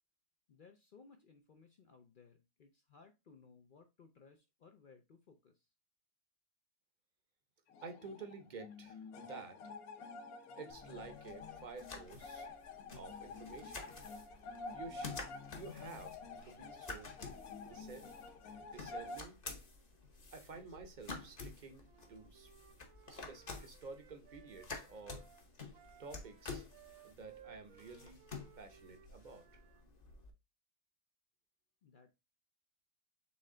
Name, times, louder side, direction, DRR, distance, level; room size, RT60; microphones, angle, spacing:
voice 1, 0.5-5.7 31.8-32.1, left 5 dB, 60° left, 0.5 m, -62 dB
sound 1, 7.7-19.2, left 3 dB, 80° left, 1.2 m, -49 dB
voice 2, 7.8-9.6 10.6-12.5 12.9-13.9 14.7-15.1 15.5-17.1 17.6-18.1 18.6-19.4 20.3-22.5 23.1-25.3 26.0-26.7 27.0-28.2 28.6-29.5, right 4 dB, 40° right, 0.7 m, -51 dB
sound 2, 10.7-30.3, left 3 dB, 35° left, 0.8 m, -51 dB
Wind instrument woodwind instrument, 21.8-29.8, right 10 dB, 75° right, 1.0 m, -62 dB
4.2 x 3.3 x 3.7 m
omnidirectional pair, 1.5 m